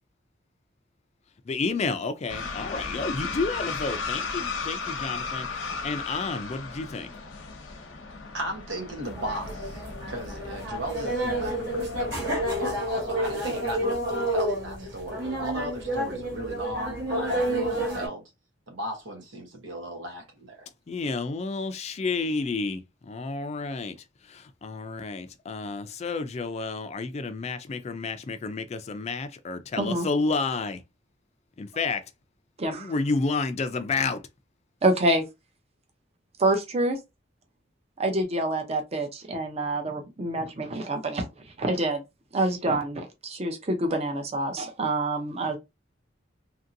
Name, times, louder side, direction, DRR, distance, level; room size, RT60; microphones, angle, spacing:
voice 1, 1.5-7.1 20.9-24.0 24.2-30.8 31.6-32.0 32.8-34.2, left 4 dB, 35° left, 0.3 m, -30 dB
sound 1, 2.3-12.7, left 4 dB, 85° left, 0.7 m, -36 dB
voice 2, 8.3-17.0 17.3-18.2 18.7-20.7, right 1 dB, 90° right, 1.1 m, -36 dB
sound 2, 9.0-18.1, right 1 dB, 60° right, 1.3 m, -29 dB
voice 3, 32.6-32.9 34.8-35.2 36.4-37.0 38.0-41.3 41.6-42.0 42.3-45.6, right 2 dB, 35° right, 0.6 m, -27 dB
2.9 x 2.6 x 2.6 m
head